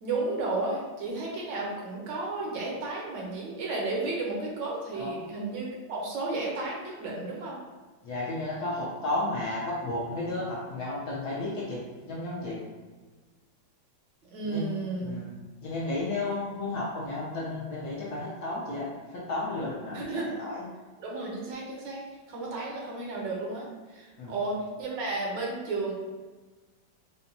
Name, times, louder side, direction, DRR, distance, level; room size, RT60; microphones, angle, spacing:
voice 1, 0.0-7.6 14.3-15.2 19.9-20.3 21.0-25.9, right 3 dB, 70° right, -3 dB, 1.3 m, -33 dB
voice 2, 8.0-12.6 14.4-14.7 15.0-15.3 15.6-20.0 20.4-20.7 24.2-24.3, left 2 dB, 65° left, -5 dB, 1.0 m, -33 dB
5.6 x 2.2 x 2.7 m, 1.3 s
omnidirectional pair, 2.2 m